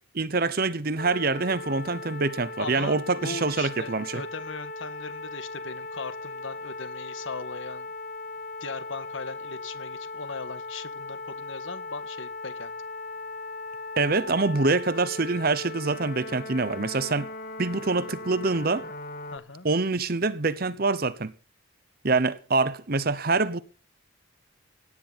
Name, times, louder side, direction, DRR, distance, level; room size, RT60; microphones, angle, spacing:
voice 1, 0.1-4.2 14.0-17.3 17.6-18.9 19.6-21.3 22.0-23.6, right 3 dB, 45° right, 0.9 m, -25 dB
sound 1, 1.0-19.4, left 2 dB, 45° left, 1.3 m, -38 dB
voice 2, 2.6-7.9 8.6-12.7 19.3-19.7, left 4 dB, 70° left, 1.5 m, -39 dB
17.5 x 9.9 x 4.2 m
head